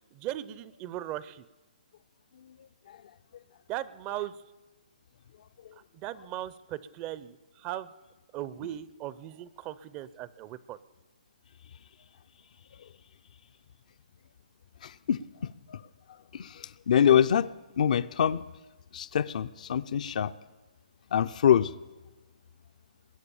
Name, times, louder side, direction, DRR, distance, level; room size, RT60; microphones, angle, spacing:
voice 1, 0.1-1.5 3.7-4.3 5.9-7.9 8.3-10.8, right 13 dB, 25° right, 17 dB, 0.5 m, -38 dB
voice 2, 14.8-15.8 16.3-17.5 17.8-18.4 18.9-20.3 21.1-21.7, left 9 dB, 60° left, 12 dB, 0.5 m, -25 dB
20.5 x 9.5 x 7.0 m, 1.2 s
hypercardioid pair, 145°, 5 cm